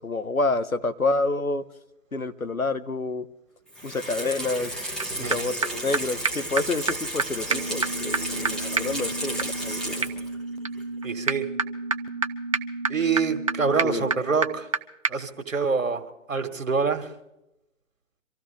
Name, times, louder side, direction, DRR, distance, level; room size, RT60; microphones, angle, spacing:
voice 1, 0.0-1.6 2.1-3.3 3.8-4.9 5.2-10.1 13.8-14.1, left 2 dB, 85° left, 10 dB, 1.3 m, -28 dB
Water tap faucet / Sink (filling or washing), 3.7-10.4 10.8-10.9, right 1 dB, ahead, 1.1 m, -33 dB
sound 1, 5.0-5.1 5.3-5.4 5.6-5.7 5.9-6.0 6.2-6.3 6.6-6.7 6.9-7.0 7.2-7.3 7.5-14.8 15.0-15.1, right 4 dB, 25° right, 0.5 m, -29 dB
voice 2, 5.1-5.5 11.0-11.5 12.9-14.7 15.1-17.1, right 5 dB, 70° right, 7 dB, 1.9 m, -26 dB
25.0 x 14.5 x 3.5 m, 0.88 s
figure-of-eight pair, 130°, 41 cm